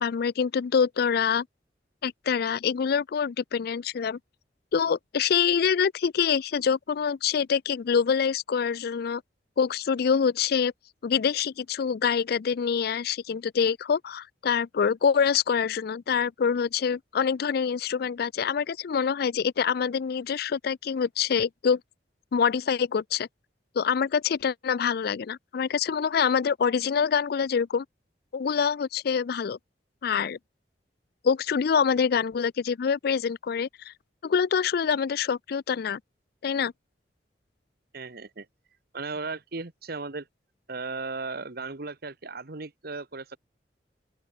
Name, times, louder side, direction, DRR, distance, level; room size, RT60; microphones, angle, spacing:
voice 1, 0.0-1.5 2.0-4.2 4.7-9.2 9.6-10.7 11.0-21.8 22.3-23.3 23.8-27.9 28.3-29.6 30.0-30.4 31.2-33.9 34.2-36.0 36.4-36.7, left 6 dB, 60° left, 0.4 m, -25 dB
voice 2, 37.9-38.5 38.9-40.3 40.7-43.4, right 3 dB, 60° right, 1.3 m, -36 dB
open air
head